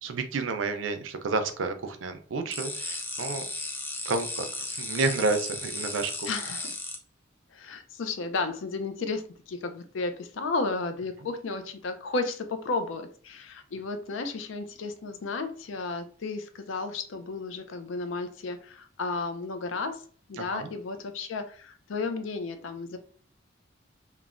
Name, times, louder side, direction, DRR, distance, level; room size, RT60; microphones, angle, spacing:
voice 1, 0.0-3.4 4.1-6.3 20.4-20.7, right 3 dB, 80° right, 0.5 m, -30 dB
sound 1, 2.5-7.0, left 2 dB, 10° left, 0.4 m, -35 dB
voice 2, 6.3-6.7 7.5-20.0 20.3-23.0, left 3 dB, 75° left, 0.4 m, -33 dB
3.1 x 2.1 x 2.4 m
head